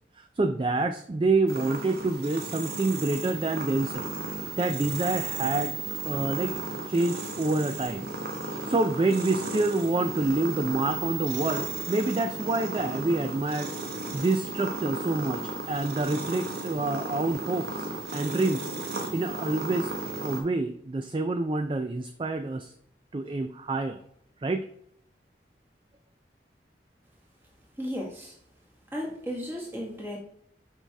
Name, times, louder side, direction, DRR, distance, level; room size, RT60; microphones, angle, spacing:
voice 1, 0.2-4.1 4.6-5.8 6.0-6.5 6.9-8.1 8.4-13.7 14.1-18.7 19.1-19.9 20.2-22.7 23.1-24.0 24.4-24.7, right 2 dB, 30° right, 7 dB, 0.3 m, -27 dB
sound 1, 1.5-20.4, right 3 dB, 60° right, 1.1 m, -35 dB
voice 2, 27.8-28.3 28.9-30.2, equal, 15° right, -3 dB, 1.5 m, -34 dB
6.6 x 4.8 x 3.4 m, 0.72 s
head